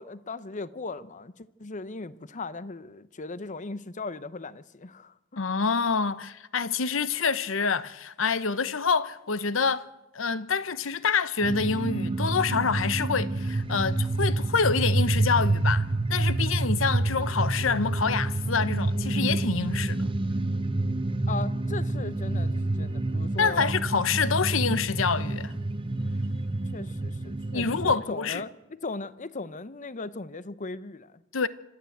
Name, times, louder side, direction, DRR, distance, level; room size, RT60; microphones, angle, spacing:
voice 1, 0.0-5.1 21.3-23.7 26.7-31.2, left 3 dB, 40° left, 0.8 m, -38 dB
voice 2, 5.4-9.9 10.1-20.1 23.4-25.5 27.5-28.4 31.3-31.5, left 5 dB, 75° left, 0.9 m, -27 dB
sound 1, 11.4-27.9, right 2 dB, 25° right, 0.6 m, -28 dB
26.5 x 13.0 x 8.0 m
head